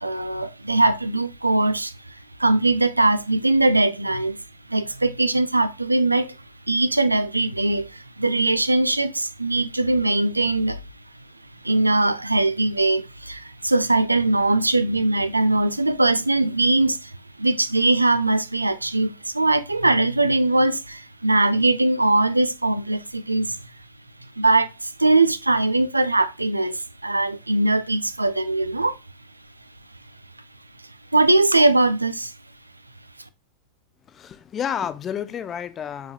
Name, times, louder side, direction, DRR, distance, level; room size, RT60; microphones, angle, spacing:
voice 1, 0.0-4.4 4.7-6.4 6.7-10.8 11.6-23.6 24.4-29.0 31.1-32.3, right 2 dB, 85° right, 0.4 m, -21 dB
voice 2, 34.1-36.1, left 8 dB, 25° left, 0.4 m, -30 dB
4.8 x 4.1 x 2.4 m
figure-of-eight pair, 90°, 0 cm